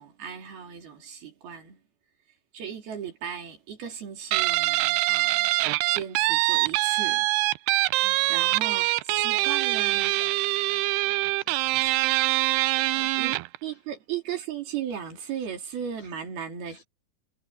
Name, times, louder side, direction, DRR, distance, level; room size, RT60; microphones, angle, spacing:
voice 1, 0.0-1.8 2.5-5.5 5.9-7.3 7.7-7.8 8.3-10.2 11.8-11.9 12.9-13.3 13.6-16.8, right 8 dB, 65° right, 5.2 m, -36 dB
Guitar, 4.3-13.6, right 20 dB, 80° right, 2.5 m, -24 dB
voice 2, 8.0-8.6 9.1-12.0 13.0-13.3 13.6-13.8 16.0-16.1 16.7-16.8, left 6 dB, 85° left, 6.8 m, -53 dB
omnidirectional pair, 4.9 m